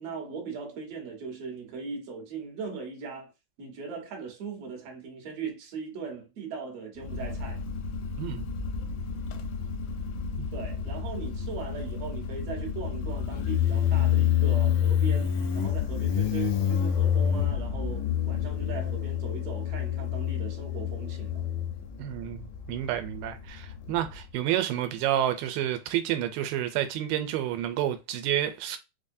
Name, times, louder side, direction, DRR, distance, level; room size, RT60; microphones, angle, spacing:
voice 1, 0.0-3.3 3.6-7.6 10.5-21.4, right 5 dB, 60° right, 1.9 m, -39 dB
Motorcycle, 7.0-24.2, left 9 dB, 80° left, 2.2 m, -28 dB
voice 2, 8.2-8.5 22.0-28.8, right 11 dB, 90° right, 2.3 m, -29 dB
5.2 x 2.1 x 2.6 m
omnidirectional pair, 3.9 m